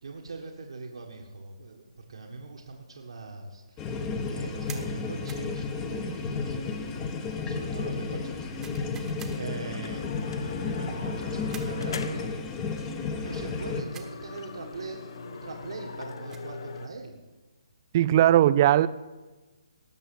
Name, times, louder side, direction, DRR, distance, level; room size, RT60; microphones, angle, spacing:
voice 1, 0.0-7.1 7.4-12.4 13.2-17.2, right 3 dB, 65° right, 1 dB, 1.6 m, -42 dB
sound 1, 3.8-13.8, left 4 dB, 20° left, 1.2 m, -32 dB
sound 2, 4.7-4.9 5.3-5.5 8.6-9.4 11.5-11.8 13.9-14.2 16.0-16.5, right 7 dB, 10° right, 1.3 m, -45 dB
sound 3, 9.3-9.4 9.8-12.4 12.8-12.9 13.3-16.9, left 4 dB, 50° left, 1.0 m, -41 dB
voice 2, 17.9-18.9, right 12 dB, 35° right, 17 dB, 0.5 m, -19 dB
18.5 x 6.9 x 7.0 m, 1.2 s
figure-of-eight pair, 140°, 3 cm